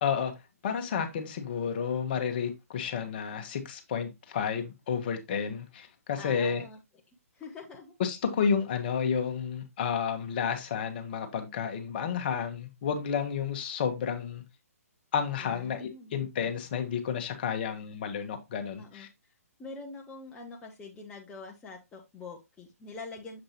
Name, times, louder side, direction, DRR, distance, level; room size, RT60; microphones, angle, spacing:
voice 1, 0.0-0.3 0.6-6.6 8.0-14.4 15.1-19.1, left 7 dB, 35° left, 1.2 m, -31 dB
voice 2, 6.2-6.8 7.3-7.9 15.4-16.2 18.8-19.1 19.6-23.4, left 3 dB, 10° left, 0.7 m, -44 dB
7.1 x 5.1 x 2.9 m
figure-of-eight pair, 130°, 8 cm